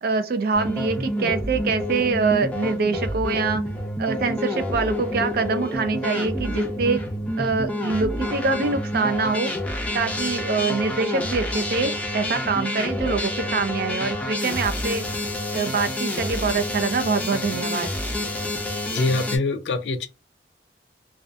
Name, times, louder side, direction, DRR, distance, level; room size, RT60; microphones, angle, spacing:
voice 1, 0.0-3.6 4.0-7.0 7.4-9.5 9.9-15.0 15.5-17.9, right 4 dB, 60° right, 0.4 m, -24 dB
sound 1, 0.5-19.4, left 1 dB, 10° left, 0.5 m, -28 dB
voice 2, 18.9-20.1, left 3 dB, 85° left, 0.4 m, -24 dB
2.6 x 2.3 x 2.2 m
head